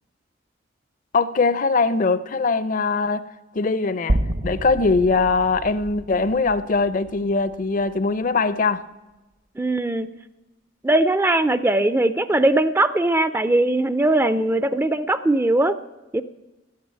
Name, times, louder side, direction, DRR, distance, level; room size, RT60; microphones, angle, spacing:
voice 1, 1.1-3.2 3.5-4.2 4.4-8.8, left 4 dB, 45° left, 0.5 m, -21 dB
sound 1, 4.1-8.3, right 1 dB, 50° right, 0.8 m, -29 dB
voice 2, 9.6-10.1 10.8-15.8 16.1-16.2, right 2 dB, 10° right, 0.4 m, -20 dB
13.5 x 9.6 x 8.8 m
head